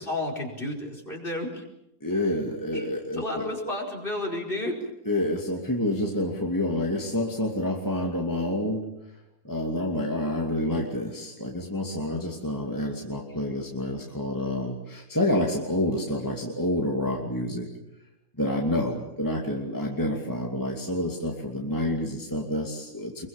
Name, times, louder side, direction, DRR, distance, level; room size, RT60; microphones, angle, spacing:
voice 1, 0.0-1.6 2.7-2.9 3.1-4.8, left 1 dB, 35° left, 0 dB, 5.2 m, -31 dB
voice 2, 2.0-3.5 5.1-8.9 9.4-17.7 18.4-23.3, left 1 dB, 15° left, 0 dB, 2.7 m, -28 dB
26.0 x 23.5 x 7.3 m, 0.86 s
omnidirectional pair, 1.5 m